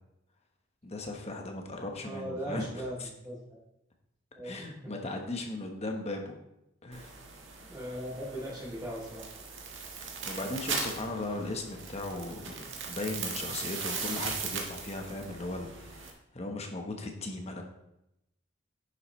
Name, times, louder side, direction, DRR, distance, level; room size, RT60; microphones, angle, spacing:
voice 1, 0.8-2.7 3.0-3.1 4.4-6.4 6.8-7.1 10.2-17.6, left 2 dB, 30° left, 3 dB, 1.2 m, -37 dB
voice 2, 2.0-3.4 4.3-4.9 7.6-9.3, right 1 dB, 15° right, -10 dB, 3.1 m, -39 dB
sound 1, 6.9-16.1, right 5 dB, 65° right, 1.6 m, -39 dB
9.8 x 7.1 x 3.2 m, 0.86 s
head